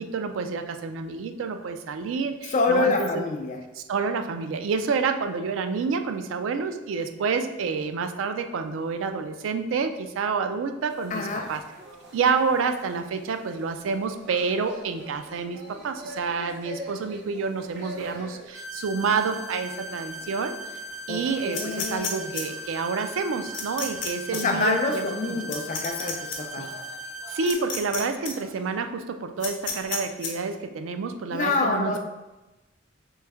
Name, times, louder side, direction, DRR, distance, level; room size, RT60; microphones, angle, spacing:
voice 1, 0.0-3.2 3.7-11.6 12.1-20.8 21.1-25.4 26.6-26.7 27.3-32.0, right 5 dB, 80° right, 7 dB, 0.3 m, -28 dB
voice 2, 2.4-3.6 11.1-11.5 21.1-22.3 24.3-26.7 31.3-32.0, left 3 dB, 40° left, 3 dB, 0.4 m, -26 dB
sound 1, 10.9-28.9, equal, 60° right, 0.8 m, -46 dB
sound 2, 18.5-27.5, right 1 dB, 5° left, 0.8 m, -39 dB
sound 3, 21.5-22.4 23.5-24.1 24.3-24.4 25.5-26.4 27.5-28.0 28.2-28.3 29.4-30.3, left 5 dB, 65° left, 0.7 m, -31 dB
3.3 x 3.1 x 3.5 m, 1.0 s
head